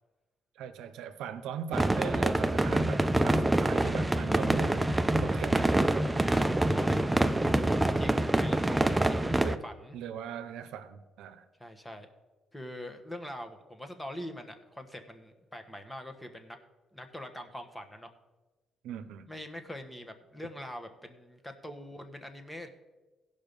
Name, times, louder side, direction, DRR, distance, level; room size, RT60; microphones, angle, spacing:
voice 1, 0.6-6.1 9.4-9.6 9.9-11.4 18.8-19.3, right 8 dB, 90° right, 0.7 m, -39 dB
sound 1, 1.7-9.6, right 1 dB, 10° right, 0.5 m, -26 dB
voice 2, 6.2-10.0 11.6-12.1 12.5-16.6 16.9-18.1 19.3-22.7, left 1 dB, 10° left, 1.3 m, -43 dB
16.0 x 5.6 x 5.3 m
cardioid pair, 90°, 0 cm